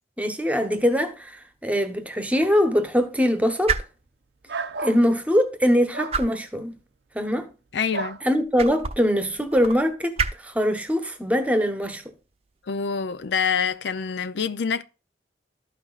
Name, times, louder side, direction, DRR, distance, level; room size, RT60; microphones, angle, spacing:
voice 1, 0.2-3.8 4.8-6.7 7.1-7.5 8.2-12.0, equal, 10° right, 1.0 m, -22 dB
sound 1, 0.6-14.2, right 5 dB, 35° right, 0.7 m, -36 dB
sound 2, 4.5-5.0 5.9-6.2 7.9-8.2, right 3 dB, 75° right, 0.6 m, -31 dB
voice 2, 7.7-8.2 12.7-14.8, left 6 dB, 75° left, 0.5 m, -26 dB
13.0 x 5.9 x 2.4 m
head